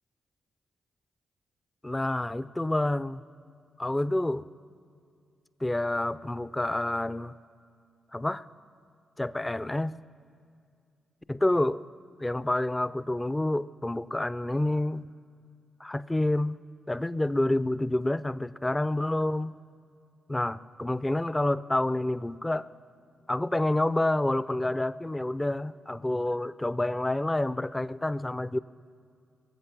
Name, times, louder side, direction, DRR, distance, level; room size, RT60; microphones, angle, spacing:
voice 1, 1.8-3.2 3.8-4.4 5.6-7.3 8.1-8.4 9.2-9.9 11.3-11.8 12.2-15.1 15.8-16.6 16.9-19.5 20.3-22.7 23.3-28.6, left 1 dB, 15° left, 16 dB, 0.4 m, -28 dB
22.5 x 7.8 x 6.0 m, 2.4 s
supercardioid pair, 55°, 0 cm